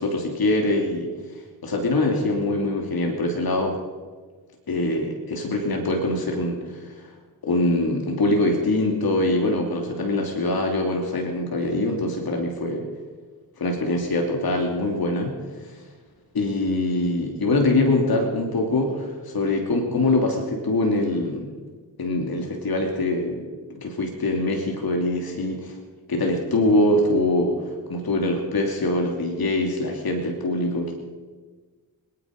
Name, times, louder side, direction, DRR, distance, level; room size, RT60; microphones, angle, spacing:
voice 1, 0.0-3.8 4.7-7.1 7.4-12.9 13.6-15.9 16.3-21.5 22.0-25.8 26.1-30.9, left 2 dB, 55° left, 1 dB, 2.9 m, -24 dB
25.5 x 9.8 x 5.3 m, 1.4 s
supercardioid pair, 45°, 43 cm